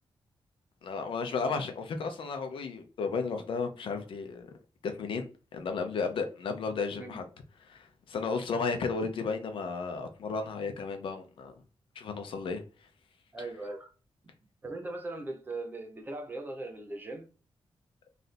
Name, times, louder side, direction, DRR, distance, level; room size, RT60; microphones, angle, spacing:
voice 1, 0.8-4.5 4.8-5.3 5.5-7.2 7.6-11.5 12.0-12.6, left 4 dB, 65° left, 0.7 m, -33 dB
voice 2, 13.3-13.9 14.6-17.3, right 2 dB, 20° right, 0.7 m, -39 dB
3.3 x 2.6 x 4.1 m
wide cardioid pair, 175°, 9 cm